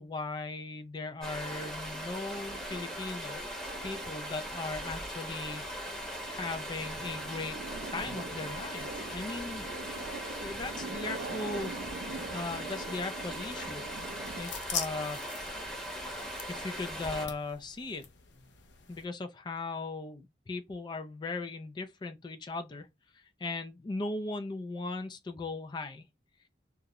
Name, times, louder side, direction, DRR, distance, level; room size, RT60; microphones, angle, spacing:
voice 1, 0.0-3.4 3.8-5.7 6.3-7.6 7.9-9.7 10.4-11.7 12.3-13.8 14.4-15.2 16.5-18.0 18.9-22.9 23.1-26.1, left 3 dB, 25° left, 0.3 m, -38 dB
Stream, 1.2-17.3, equal, 5° left, 0.8 m, -39 dB
sound 1, 2.3-4.3 4.8-5.3 5.7-14.4, right 3 dB, 65° right, 0.3 m, -44 dB
sound 2, 13.9-19.1, left 7 dB, 85° left, 0.5 m, -43 dB
2.4 x 2.0 x 2.7 m
head